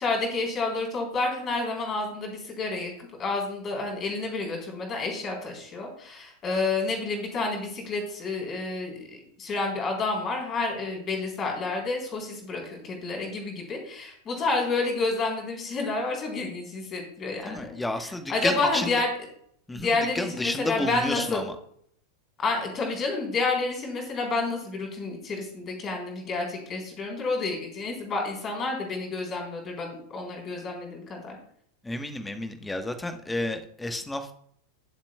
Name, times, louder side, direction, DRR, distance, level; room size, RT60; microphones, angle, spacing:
voice 1, 0.0-19.1 19.7-21.4 22.4-31.4, left 3 dB, 25° left, 0 dB, 3.8 m, -29 dB
voice 2, 17.4-18.9 19.7-21.5 31.8-34.3, left 1 dB, 10° left, 8 dB, 1.1 m, -31 dB
17.5 x 7.4 x 2.3 m, 0.66 s
figure-of-eight pair, 90°, 0 cm